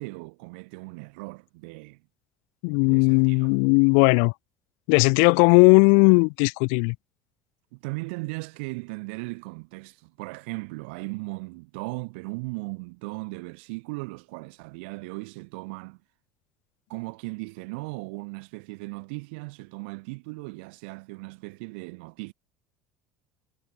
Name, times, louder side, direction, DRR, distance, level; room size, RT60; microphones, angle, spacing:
voice 1, 0.0-2.0 2.9-3.6 7.7-16.0 16.9-22.3, right 28 dB, 85° right, 2.1 m, -37 dB
voice 2, 2.6-4.3 4.9-7.0, left 40 dB or more, 80° left, 0.4 m, -18 dB
supercardioid pair, 110°, 6 cm